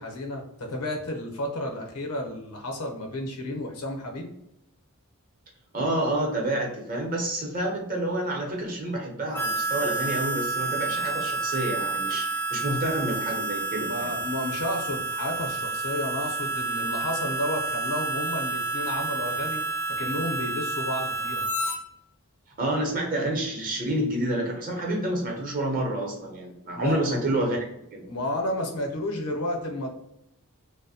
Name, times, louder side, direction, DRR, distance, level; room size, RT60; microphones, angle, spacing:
voice 1, 0.0-4.3 13.9-21.4 26.7-27.0 28.1-29.9, left 1 dB, 85° left, 2 dB, 0.7 m, -32 dB
voice 2, 5.7-14.1 22.6-27.6 27.9-28.0, right 1 dB, 40° right, -1 dB, 0.7 m, -28 dB
Harmonica, 9.3-21.8, right 3 dB, 10° left, 0.4 m, -29 dB
2.6 x 2.0 x 2.7 m, 0.81 s
head